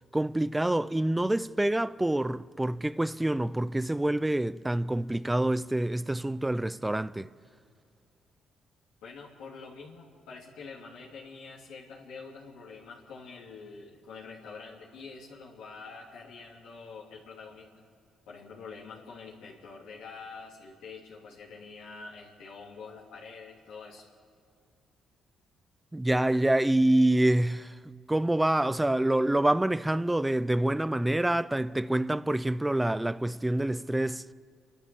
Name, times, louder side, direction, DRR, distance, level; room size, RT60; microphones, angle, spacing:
voice 1, 0.1-7.3 25.9-27.7 28.1-34.2, right 1 dB, 10° right, 0.5 m, -26 dB
voice 2, 9.0-17.7 18.3-24.0, left 4 dB, 90° left, 3.0 m, -46 dB
30.0 x 12.0 x 7.1 m
cardioid pair, 90°, 0 cm